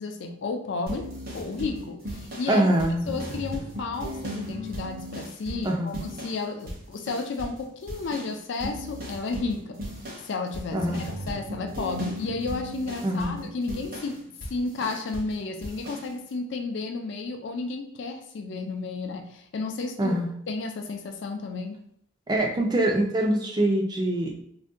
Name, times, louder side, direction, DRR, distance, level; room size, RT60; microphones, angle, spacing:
voice 1, 0.0-2.7 3.1-9.8 10.2-20.2 20.5-21.8, left 3 dB, 65° left, 5 dB, 0.4 m, -32 dB
sound 1, 0.9-6.4 6.7-7.6 7.9-15.3 15.6-16.1, equal, 45° right, 0.8 m, -37 dB
voice 2, 2.5-3.1 5.6-6.0 10.7-11.0 13.0-13.4 20.0-20.3 22.3-24.3, right 1 dB, 20° right, 1 dB, 0.4 m, -24 dB
2.6 x 2.2 x 3.5 m, 0.67 s
head